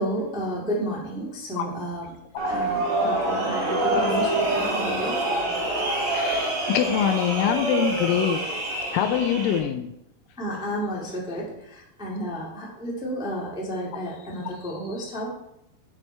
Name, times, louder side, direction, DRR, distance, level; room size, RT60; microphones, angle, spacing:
voice 1, 0.0-2.1 2.5-5.2 9.6-9.7 10.4-15.3, right 1 dB, ahead, -4 dB, 1.1 m, -31 dB
sound 1, 2.4-9.6, right 2 dB, 40° right, 2.5 m, -26 dB
voice 2, 6.0-8.4 8.9-9.9, left 9 dB, 80° left, 7 dB, 2.2 m, -24 dB
9.5 x 6.5 x 4.4 m, 0.82 s
omnidirectional pair, 4.2 m